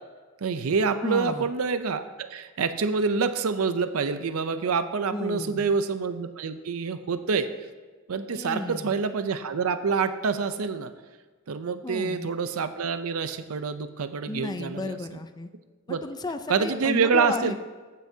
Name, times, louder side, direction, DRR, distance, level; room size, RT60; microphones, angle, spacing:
voice 1, 0.4-7.5 8.1-10.9 11.5-15.0 15.9-16.0 16.5-17.6, right 5 dB, 90° right, 11 dB, 0.5 m, -27 dB
voice 2, 1.0-1.5 5.1-5.7 8.3-9.0 11.8-12.3 14.3-15.5 15.9-17.6, left 2 dB, 20° left, 9 dB, 0.4 m, -33 dB
14.5 x 9.4 x 2.8 m, 1.4 s
head